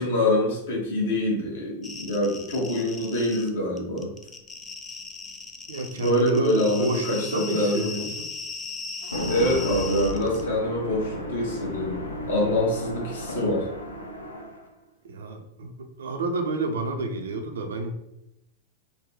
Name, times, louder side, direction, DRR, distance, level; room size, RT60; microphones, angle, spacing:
voice 1, 0.0-4.1 5.9-8.1 9.3-12.0 12.3-13.7, left 1 dB, 60° left, -3 dB, 1.3 m, -25 dB
sound 1, 1.8-3.5 3.8-10.4, left 4 dB, 15° left, 0.4 m, -37 dB
voice 2, 5.7-8.3 15.0-15.7 16.0-17.9, right 2 dB, 65° right, 4 dB, 0.5 m, -30 dB
sound 2, 9.0-14.7, left 1 dB, 80° left, 0.6 m, -33 dB
3.8 x 2.2 x 3.1 m, 0.85 s
figure-of-eight pair, 90°, 0 cm